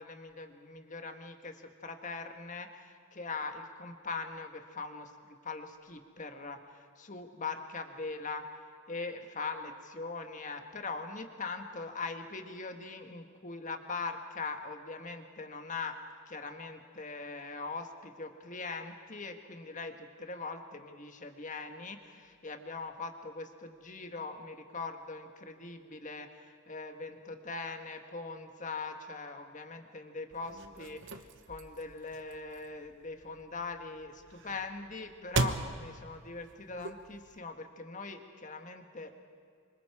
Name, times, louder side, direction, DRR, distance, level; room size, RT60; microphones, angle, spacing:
voice 1, 0.0-5.1 5.4-6.6 7.0-8.4 8.9-16.0 16.3-26.3 26.7-31.1 31.5-39.1, left 4 dB, 35° left, 5 dB, 1.6 m, -41 dB
sound 1, 30.3-37.4, right 3 dB, 55° right, 1.1 m, -39 dB
27.0 x 25.5 x 4.9 m, 2.3 s
head